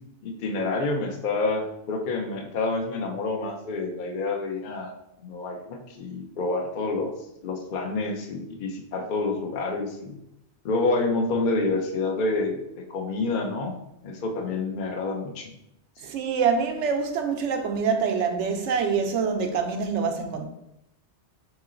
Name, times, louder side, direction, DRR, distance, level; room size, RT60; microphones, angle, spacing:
voice 1, 0.2-4.9 5.2-7.1 7.4-10.2 10.6-13.7 14.0-15.5, left 3 dB, 55° left, 0.6 m, -28 dB
voice 2, 16.0-20.5, right 5 dB, 85° right, 0.9 m, -25 dB
3.7 x 3.0 x 3.7 m
omnidirectional pair, 1.2 m